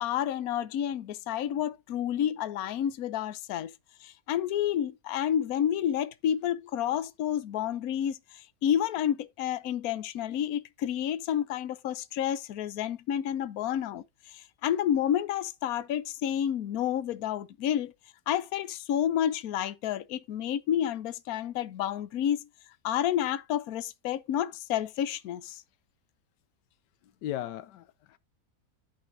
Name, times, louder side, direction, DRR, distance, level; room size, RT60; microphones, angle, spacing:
voice 1, 0.0-3.7 4.0-8.2 8.6-14.0 14.3-17.9 18.3-22.5 22.8-25.6, left 10 dB, 65° left, 1.2 m, -30 dB
voice 2, 27.0-28.2, left 12 dB, 90° left, 1.3 m, -37 dB
13.5 x 5.4 x 2.7 m
omnidirectional pair, 1.8 m